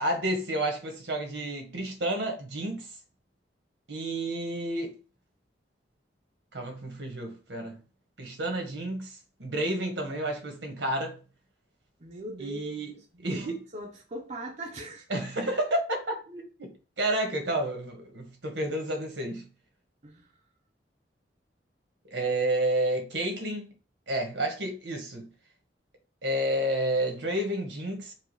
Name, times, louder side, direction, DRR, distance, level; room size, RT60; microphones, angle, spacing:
voice 1, 0.0-2.9 3.9-4.9 6.5-7.8 8.2-11.1 12.4-12.9 13.2-13.6 15.1-16.7 17.0-19.5 22.1-23.7 24.1-25.3 26.2-28.1, right 1 dB, 80° right, 1.4 m, -30 dB
voice 2, 12.0-15.0 20.0-20.3, right 1 dB, 40° right, 0.7 m, -41 dB
4.7 x 2.4 x 4.6 m
head